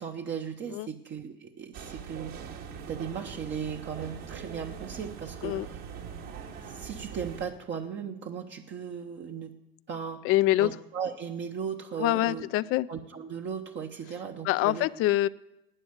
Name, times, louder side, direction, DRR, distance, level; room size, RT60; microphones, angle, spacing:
voice 1, 0.0-2.4 2.9-5.6 6.6-9.5 9.9-10.2 10.6-12.5 12.9-14.9, right 7 dB, 40° right, 3 dB, 1.0 m, -37 dB
sound 1, 1.7-7.5, right 7 dB, 65° right, 2.3 m, -42 dB
voice 2, 10.2-10.7 12.0-12.9 14.4-15.3, left 16 dB, 45° left, 18 dB, 0.5 m, -25 dB
12.0 x 9.3 x 8.0 m, 0.91 s
hypercardioid pair, 85°, 30 cm